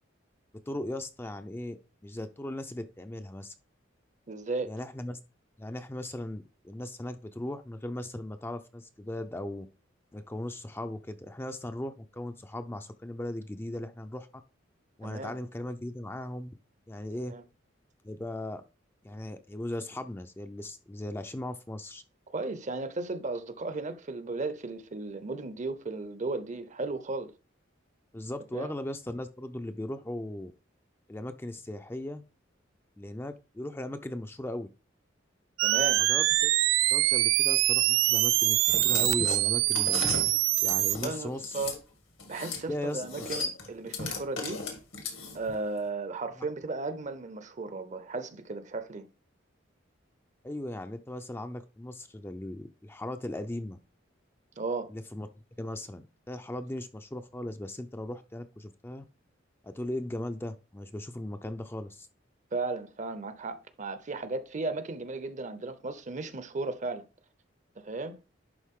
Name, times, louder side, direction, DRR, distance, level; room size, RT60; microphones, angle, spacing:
voice 1, 0.7-3.5 4.7-5.2 5.6-9.7 10.1-14.4 15.0-16.5 16.9-17.3 18.0-18.6 19.0-22.0 28.1-30.5 31.1-32.2 33.0-34.7 36.0-36.5 36.9-40.1 40.6-41.7 42.7-43.3 50.4-53.8 54.9-55.3 55.6-59.0 59.6-62.1, left 1 dB, 10° left, 0.4 m, -38 dB
voice 2, 4.3-4.7 15.0-15.4 17.3-17.4 22.3-27.3 28.5-28.7 35.6-36.0 40.9-41.8 42.3-44.6 45.3-49.1 54.6-54.9 62.5-67.0 67.8-68.2, right 3 dB, 40° right, 0.7 m, -35 dB
sound 1, 35.6-41.0, right 17 dB, 80° right, 0.3 m, -24 dB
sound 2, 38.6-41.8 42.2-42.6 42.9-45.5, left 4 dB, 85° left, 2.4 m, -36 dB
11.0 x 4.0 x 3.6 m
head